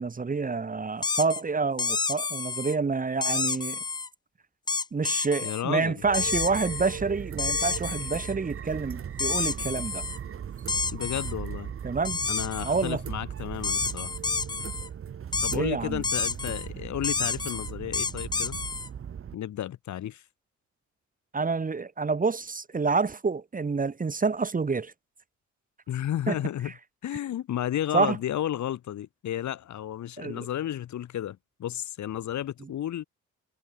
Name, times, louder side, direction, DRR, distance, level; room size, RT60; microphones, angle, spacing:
voice 1, 0.0-3.8 4.9-10.0 11.8-12.2 12.6-13.0 15.5-16.0 21.3-24.9 26.3-26.4 27.9-28.2 30.2-30.4, right 4 dB, 30° right, 2.0 m, -28 dB
sound 1, 1.0-1.4 1.8-2.7 3.2-4.1 4.7-5.6 6.1-7.0 7.4-8.3 9.2-10.2 10.7-11.3 12.0-12.9 13.6-14.9 15.3-15.6 16.0-16.7 17.0-18.9, left 4 dB, 15° left, 0.4 m, -30 dB
voice 2, 5.4-6.0 10.9-11.7 12.3-14.1 15.4-18.6 19.3-20.2 25.9-26.7 27.0-33.0, left 11 dB, 70° left, 3.8 m, -32 dB
sound 2, 6.0-19.3, right 8 dB, 45° right, 1.4 m, -38 dB
cardioid pair, 90°, 30 cm